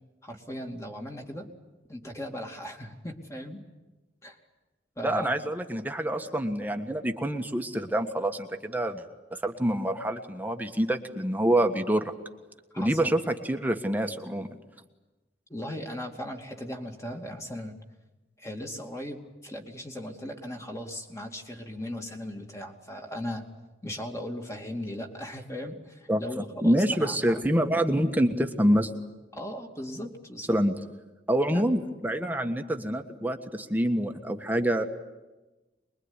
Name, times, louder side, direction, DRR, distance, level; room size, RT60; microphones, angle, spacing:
voice 1, 0.2-1.5 1.9-3.6 4.2-4.4 5.0-5.3 12.7-13.2 15.5-17.8 18.4-23.5 23.8-27.4 29.3-30.6 31.5-31.6, left 1 dB, 15° left, 3 dB, 2.6 m, -38 dB
voice 2, 5.0-9.0 9.3-12.1 12.8-14.5 26.1-26.2 26.6-28.9 30.5-30.8 31.3-34.9, right 1 dB, 10° right, 5 dB, 1.5 m, -26 dB
24.5 x 22.0 x 9.8 m, 1.1 s
head